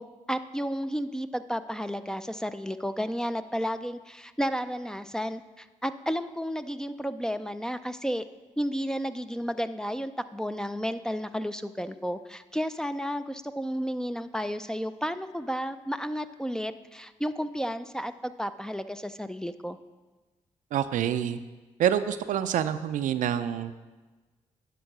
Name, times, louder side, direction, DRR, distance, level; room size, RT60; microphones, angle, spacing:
voice 1, 0.0-8.2 8.6-19.8, equal, 5° left, 11 dB, 0.4 m, -32 dB
voice 2, 20.7-21.4 21.8-23.8, right 10 dB, 80° right, 11 dB, 0.4 m, -27 dB
10.0 x 4.6 x 6.0 m, 1.2 s
supercardioid pair, 55°, 13 cm